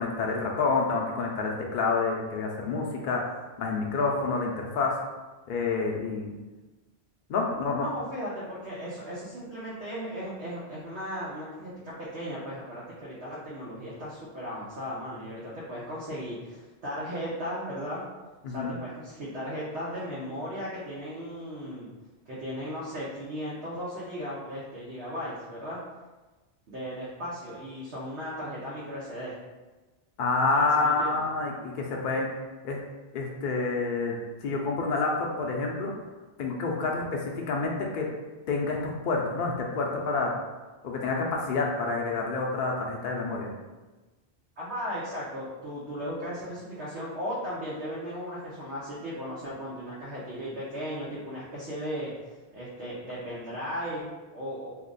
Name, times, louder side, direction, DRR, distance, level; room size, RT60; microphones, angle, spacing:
voice 1, 0.0-4.9 5.5-6.3 7.3-7.9 18.4-18.7 30.2-32.3 32.6-32.8 33.1-35.9 36.4-38.1 38.5-40.3 40.8-43.5, left 3 dB, 60° left, -1 dB, 0.6 m, -28 dB
voice 2, 7.5-18.1 18.5-21.9 22.3-25.8 26.7-29.4 30.5-31.2 44.6-52.1 52.5-54.7, equal, 85° right, -9 dB, 1.1 m, -36 dB
2.7 x 2.4 x 3.7 m, 1.2 s
omnidirectional pair, 1.1 m